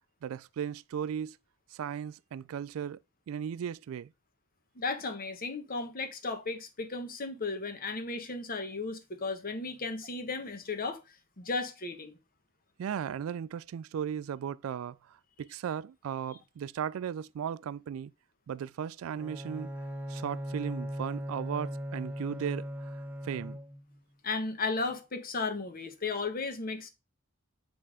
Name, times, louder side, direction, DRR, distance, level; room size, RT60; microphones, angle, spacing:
voice 1, 0.2-1.4 1.7-3.0 3.3-4.1 12.8-18.1 18.5-19.7 20.1-23.0 23.2-23.6, right 8 dB, 75° right, 0.3 m, -36 dB
voice 2, 4.7-11.0 11.4-12.2 24.2-26.9, left 3 dB, 45° left, 1.1 m, -35 dB
Bowed string instrument, 19.1-24.0, equal, 5° right, 0.8 m, -38 dB
7.6 x 3.3 x 4.9 m
head